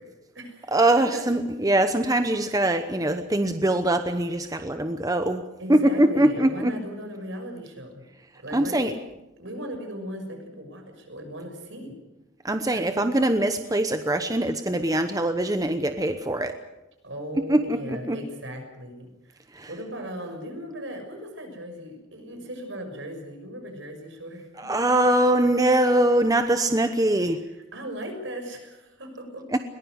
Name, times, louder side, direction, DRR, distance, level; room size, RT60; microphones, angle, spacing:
voice 1, 0.0-1.3 5.6-8.0 8.3-8.9 9.4-11.9 12.7-13.0 17.0-19.4 19.7-24.7 27.4-29.5, equal, 65° right, 5 dB, 6.4 m, -38 dB
voice 2, 0.7-5.4 5.7-6.7 8.5-8.9 12.4-16.6 17.5-17.8 18.1-18.2 19.5-19.7 24.6-27.4 29.5-29.6, right 1 dB, 20° right, 8 dB, 0.9 m, -22 dB
21.5 x 20.0 x 8.0 m, 0.97 s
head